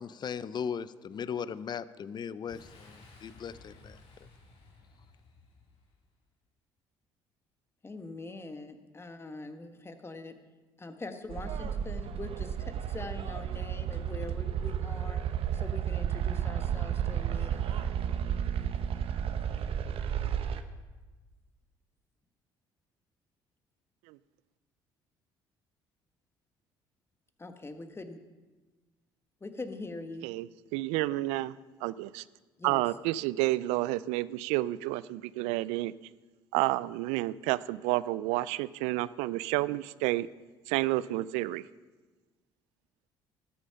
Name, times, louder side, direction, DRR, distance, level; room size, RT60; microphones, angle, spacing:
voice 1, 0.0-4.0, left 7 dB, 40° left, 17 dB, 0.5 m, -38 dB
Boom, 2.5-6.1, left 2 dB, 60° left, 2.8 m, -55 dB
voice 2, 7.8-10.3 10.8-15.2 15.5-17.7 27.4-28.2 29.4-30.3 32.6-32.8, left 2 dB, 20° left, 7 dB, 1.4 m, -43 dB
sound 1, 11.3-20.6, right 9 dB, 60° right, 0.8 m, -32 dB
voice 3, 30.2-31.5 31.8-32.2 32.6-35.9 36.5-40.3 40.7-41.6, right 17 dB, 80° right, 19 dB, 0.4 m, -30 dB
13.0 x 8.5 x 5.7 m, 1.2 s
hypercardioid pair, 65°, 11 cm